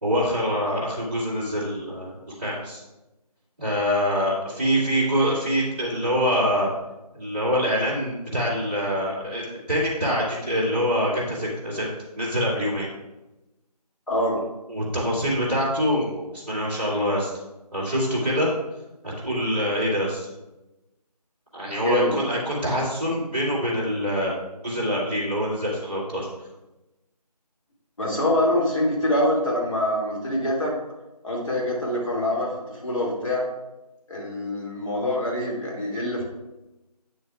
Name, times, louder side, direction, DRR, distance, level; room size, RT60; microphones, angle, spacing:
voice 1, 0.0-2.8 3.6-6.7 7.1-11.9 12.2-12.9 14.7-17.3 17.7-18.5 19.0-20.3 21.5-24.3 24.6-26.3, equal, 15° right, -12 dB, 2.1 m, -25 dB
voice 2, 14.1-14.4 21.8-22.3 28.0-30.7 31.2-33.5 34.1-36.2, left 1 dB, 50° left, -4 dB, 2.3 m, -25 dB
9.5 x 7.0 x 2.3 m, 1.0 s
figure-of-eight pair, 170°, 21 cm